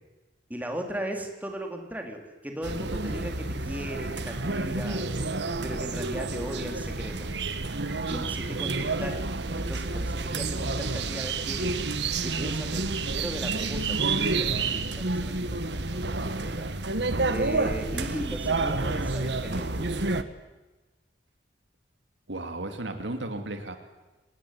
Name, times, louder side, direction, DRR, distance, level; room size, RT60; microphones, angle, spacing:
voice 1, 0.5-5.1 5.6-7.3 8.1-9.2 9.6-11.7 12.2-16.7 17.3-19.9, equal, 10° right, 3 dB, 3.7 m, -37 dB
sound 1, 2.6-20.2, right 3 dB, 70° right, 1.5 m, -29 dB
voice 2, 22.3-23.8, right 2 dB, 85° right, 7 dB, 2.8 m, -35 dB
25.5 x 20.5 x 9.6 m, 1.1 s
head